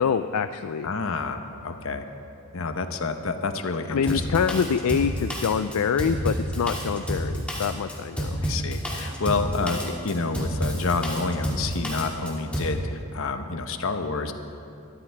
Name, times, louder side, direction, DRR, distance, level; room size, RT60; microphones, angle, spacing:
voice 1, 0.0-0.9 3.9-8.4, left 6 dB, 80° left, 10 dB, 0.4 m, -25 dB
voice 2, 0.8-2.0 2.5-4.2 8.4-14.3, left 3 dB, 65° left, 7 dB, 0.9 m, -29 dB
Drum kit, 4.1-12.8, equal, 5° left, 2.3 m, -29 dB
21.0 x 14.0 x 3.5 m, 2.6 s
head